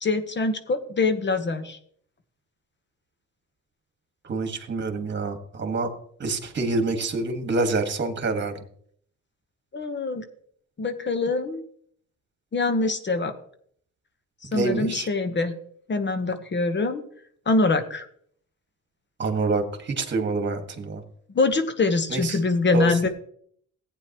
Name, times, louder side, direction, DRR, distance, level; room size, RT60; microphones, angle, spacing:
voice 1, 0.0-1.8 9.7-10.2 10.8-11.6 12.5-13.3 14.5-15.6 15.9-17.0 17.5-18.1 21.3-23.1, left 3 dB, 35° left, 9 dB, 1.2 m, -24 dB
voice 2, 4.2-5.9 6.2-8.5 14.5-15.1 19.2-21.0 22.1-22.4 22.7-22.9, right 3 dB, 35° right, 6 dB, 1.9 m, -26 dB
15.0 x 9.1 x 3.1 m, 0.62 s
cardioid pair, 90°, 30 cm